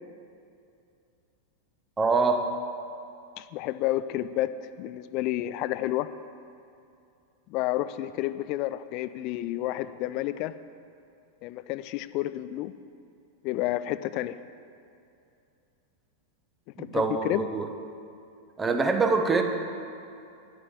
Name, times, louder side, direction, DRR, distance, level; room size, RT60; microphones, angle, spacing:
voice 1, 2.0-2.5 16.8-17.7 18.6-19.4, right 4 dB, 15° right, 5 dB, 1.1 m, -24 dB
voice 2, 3.4-4.5 4.8-6.1 7.5-10.5 11.4-12.7 13.4-14.4 16.8-17.4, left 15 dB, 40° left, 14 dB, 0.4 m, -30 dB
10.0 x 8.2 x 7.7 m, 2.6 s
figure-of-eight pair, 90°, 0 cm